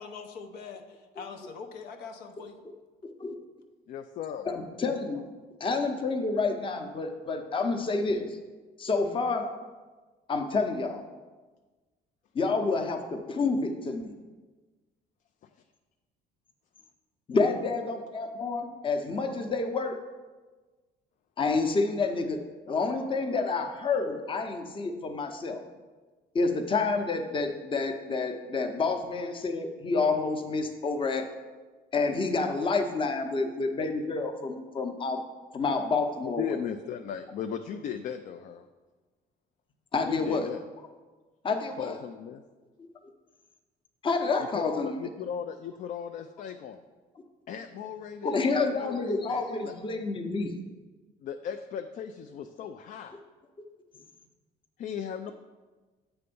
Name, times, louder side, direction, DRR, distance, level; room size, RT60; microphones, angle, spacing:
voice 1, 0.0-2.6, left 5 dB, 80° left, 5 dB, 0.7 m, -43 dB
voice 2, 3.0-3.3 4.5-5.3 5.6-8.4 8.8-9.5 10.3-11.0 12.3-14.2 17.3-20.0 21.4-25.6 26.3-31.3 31.9-35.2 35.5-36.6 39.9-40.5 41.4-42.0 44.0-44.9 48.2-50.5, left 3 dB, 30° left, 4 dB, 0.7 m, -29 dB
voice 3, 3.9-4.4 36.2-38.6 40.0-40.6 41.8-42.4 44.5-46.8 47.5-49.7 51.2-53.1 54.8-55.3, left 8 dB, 50° left, 7 dB, 0.4 m, -37 dB
7.9 x 3.4 x 5.3 m, 1.3 s
cardioid pair, 110°, 17 cm